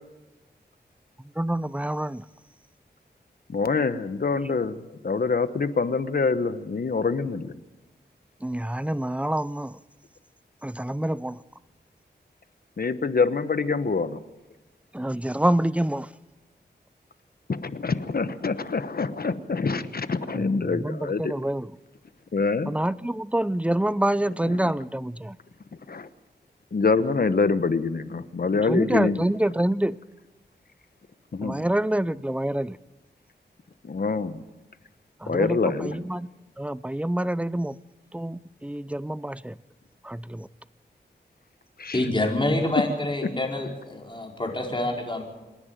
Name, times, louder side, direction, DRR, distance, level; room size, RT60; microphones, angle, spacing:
voice 1, 1.4-2.2 8.4-9.8 10.6-11.4 14.9-16.1 20.3-21.7 22.7-25.4 28.7-30.0 31.4-32.8 35.2-36.3 36.6-37.8 38.1-39.6 40.0-40.5, right 1 dB, 5° right, 18 dB, 0.6 m, -27 dB
voice 2, 3.5-7.5 12.8-14.2 17.5-21.3 22.3-22.7 24.4-24.6 25.9-26.1 26.7-29.3 31.3-31.6 33.8-34.4 35.3-36.1 41.8-42.0, left 4 dB, 60° left, 12 dB, 1.1 m, -25 dB
voice 3, 41.9-45.3, left 1 dB, 25° left, 0 dB, 4.9 m, -27 dB
27.0 x 10.5 x 9.1 m, 1.1 s
wide cardioid pair, 60°, 18 cm